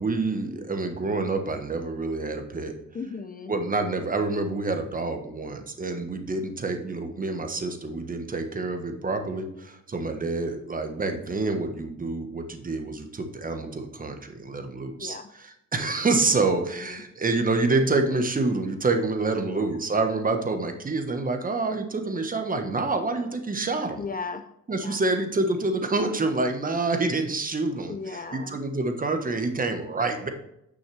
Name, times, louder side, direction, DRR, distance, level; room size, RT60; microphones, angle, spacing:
voice 1, 0.0-2.7 3.5-24.0 24.7-30.3, right 3 dB, 30° right, 6 dB, 1.3 m, -27 dB
voice 2, 2.9-3.5 15.0-15.3 16.8-17.0 19.4-19.7 24.0-24.5 24.8-25.0 27.9-28.6, left 4 dB, 30° left, 9 dB, 0.6 m, -36 dB
9.3 x 6.3 x 3.4 m, 0.79 s
cardioid pair, 90°, 30 cm